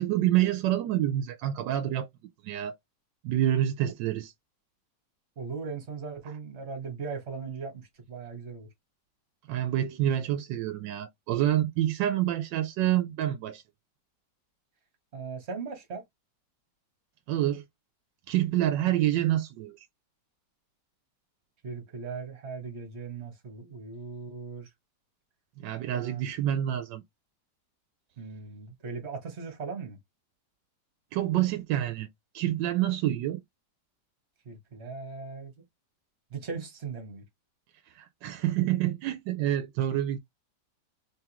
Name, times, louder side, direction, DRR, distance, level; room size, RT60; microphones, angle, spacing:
voice 1, 0.0-2.1 2.4-2.7 3.2-4.3 9.5-13.6 17.3-17.6 18.3-19.8 25.6-27.0 31.1-32.1 32.3-33.4 37.9-40.2, right 12 dB, 90° right, 1.3 m, -27 dB
voice 2, 5.3-8.7 15.1-16.0 21.6-24.7 25.9-26.2 28.2-30.0 34.4-35.5 36.3-37.2, right 5 dB, 40° right, 1.7 m, -38 dB
3.6 x 3.5 x 2.9 m
omnidirectional pair, 1.9 m